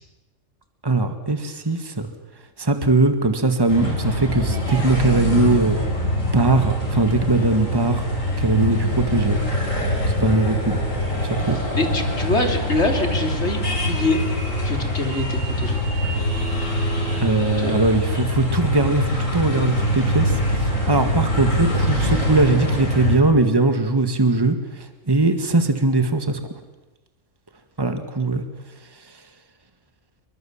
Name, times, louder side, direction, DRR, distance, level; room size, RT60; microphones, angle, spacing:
voice 1, 0.8-2.1 2.6-5.8 6.3-8.0 8.4-9.4 10.1-10.8 11.2-11.6 17.2-26.4 27.8-28.4, right 2 dB, 20° right, 7 dB, 2.0 m, -20 dB
sound 1, 3.7-23.2, left 1 dB, 80° left, 6.8 m, -24 dB
voice 2, 11.4-14.2 14.6-15.8 17.6-17.8, left 2 dB, 60° left, 4 dB, 3.8 m, -24 dB
29.5 x 23.5 x 7.4 m, 1.1 s
omnidirectional pair, 1.3 m